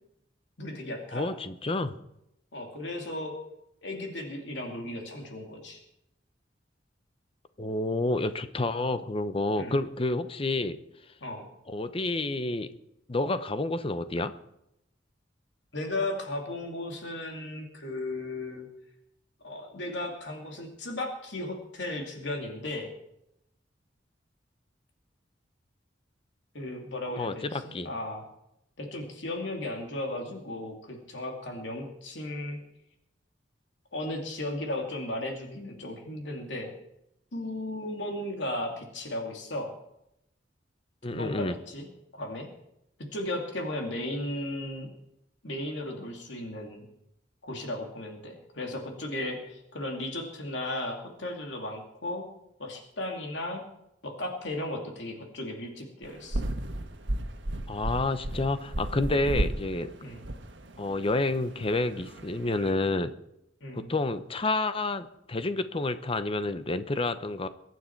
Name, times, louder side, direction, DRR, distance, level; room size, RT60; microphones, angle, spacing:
voice 1, 0.6-1.3 2.5-3.3 3.8-5.8 9.6-9.8 11.2-11.5 15.7-18.7 19.4-22.9 26.5-28.3 28.8-32.6 33.9-36.7 37.3-39.7 41.1-41.9 42.1-42.5 43.1-44.9 45.4-46.9 47.4-52.3 52.6-53.6 54.0-56.4 59.2-59.4 60.0-60.2 63.6-63.9, left 1 dB, 75° left, 2 dB, 2.5 m, -35 dB
voice 2, 1.1-2.0 7.6-10.8 11.7-12.7 13.1-14.3 27.2-27.9 41.0-41.6 57.7-59.9 60.8-63.1 63.8-67.5, left 2 dB, 30° left, 12 dB, 0.8 m, -29 dB
sound 1, 56.0-62.7, right 1 dB, 75° right, 1.5 m, -34 dB
23.0 x 9.3 x 4.6 m, 0.82 s
head